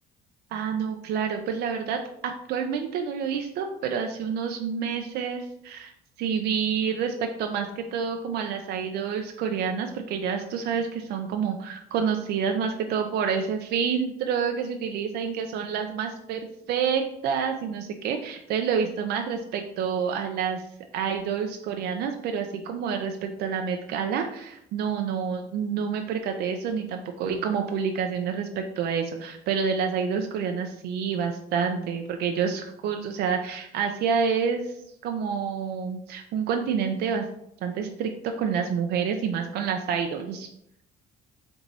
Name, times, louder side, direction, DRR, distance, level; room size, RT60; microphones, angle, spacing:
voice 1, 0.5-5.9 6.2-20.6 20.9-37.3 37.6-40.5, right 6 dB, 75° right, 5 dB, 0.5 m, -28 dB
4.6 x 2.6 x 3.9 m, 0.75 s
cardioid pair, 110°, 17 cm